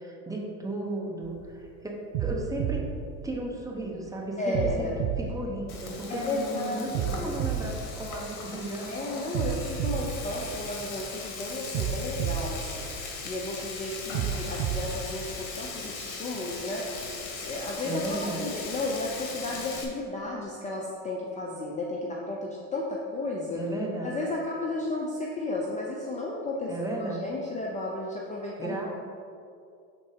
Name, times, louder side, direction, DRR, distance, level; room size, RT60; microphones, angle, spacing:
voice 1, 0.0-1.9 2.2-2.9 3.2-4.9 5.2-9.2 17.8-18.5 23.5-24.2 26.7-27.3 28.6-28.9, right 2 dB, 10° right, -1 dB, 0.9 m, -34 dB
sound 1, 1.2-1.5 2.1-3.9 4.5-6.3 6.9-8.7 9.3-11.1 11.7-13.5 14.1-15.9, right 8 dB, 50° right, 0.5 m, -32 dB
voice 2, 4.4-4.9 6.1-7.3 8.9-18.0 18.4-23.6 24.0-28.8, left 2 dB, 15° left, -2 dB, 0.6 m, -33 dB
Frying (food), 5.7-19.8, left 4 dB, 70° left, 1.4 m, -39 dB
6.0 x 4.0 x 4.9 m, 2.4 s
hypercardioid pair, 100°, 44 cm